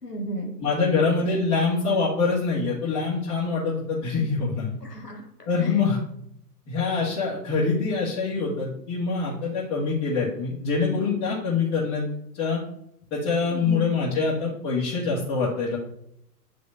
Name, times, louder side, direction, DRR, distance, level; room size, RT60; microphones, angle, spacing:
voice 1, 0.0-0.5 4.8-5.3 5.6-5.7 13.5-13.9, right 1 dB, 85° left, 0 dB, 2.0 m, -34 dB
voice 2, 0.6-4.8 5.5-6.0 6.7-12.1 12.3-12.6 13.1-15.8, left 4 dB, 30° left, -8 dB, 2.1 m, -25 dB
10.0 x 5.2 x 2.7 m, 0.74 s
figure-of-eight pair, 110°, 47 cm